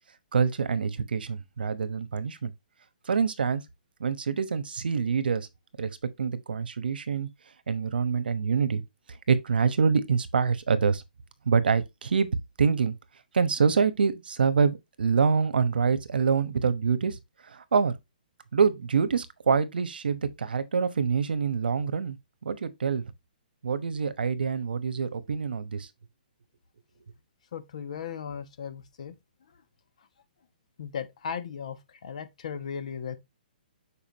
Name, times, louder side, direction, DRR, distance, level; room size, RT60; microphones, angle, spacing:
voice 1, 0.3-2.5 3.0-3.6 4.0-5.5 5.8-7.3 7.7-8.8 9.3-11.0 11.4-12.3 12.6-12.9 13.3-17.2 17.4-17.9 18.5-22.2 22.4-23.1 23.6-25.9, right 5 dB, 80° right, 1.1 m, -26 dB
voice 2, 27.5-29.2 30.8-33.2, left 7 dB, 45° left, 1.1 m, -36 dB
7.2 x 4.9 x 2.9 m
hypercardioid pair, 175°, 5 cm